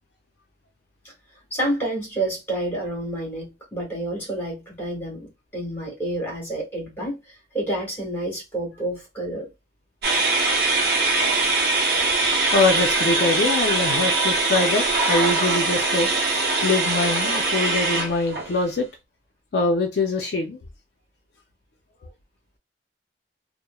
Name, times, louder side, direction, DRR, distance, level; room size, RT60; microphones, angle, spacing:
voice 1, 1.5-7.2 7.5-9.5, right 1 dB, 15° left, 1.5 m, -29 dB
sound 1, 10.0-18.6, right 3 dB, 60° right, 0.7 m, -22 dB
voice 2, 12.5-16.1 16.6-18.9 19.5-20.6, left 3 dB, 65° left, 0.4 m, -23 dB
3.0 x 2.0 x 2.2 m
head